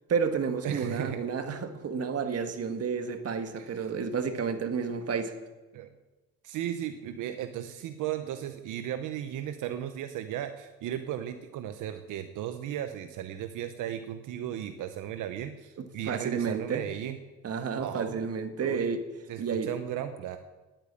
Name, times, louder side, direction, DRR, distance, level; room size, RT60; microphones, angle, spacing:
voice 1, 0.1-5.3 16.1-16.9 17.4-19.0 19.4-19.7, right 6 dB, 55° right, 7 dB, 1.5 m, -31 dB
voice 2, 0.6-1.2 3.6-3.9 5.7-5.9 6.4-17.2 17.8-18.2 18.6-18.9 19.3-20.4, right 11 dB, 85° right, 8 dB, 0.8 m, -35 dB
10.5 x 8.9 x 8.4 m, 1.2 s
cardioid pair, 90°, 30 cm